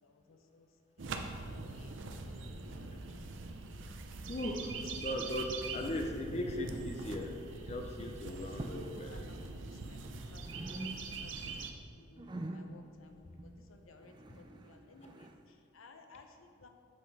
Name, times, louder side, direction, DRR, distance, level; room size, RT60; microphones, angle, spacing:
voice 1, 0.0-0.7 1.0-1.1 1.3-1.9 5.8-6.1 8.3-10.4 10.7-10.9 11.2-11.6 11.9-16.7, left 3 dB, 90° left, 5 dB, 0.7 m, -59 dB
sound 1, 1.0-11.7, right 3 dB, 70° right, 0.6 m, -43 dB
voice 2, 4.3-9.4 14.3-14.4 15.0-15.1, left 1 dB, 30° left, 2 dB, 0.6 m, -39 dB
sound 2, 6.6-7.3 7.6-7.9 8.5-9.0 9.3-10.2 10.4-11.4 11.7-15.4, right 1 dB, 20° right, 0.3 m, -46 dB
7.6 x 6.0 x 4.1 m, 2.2 s
head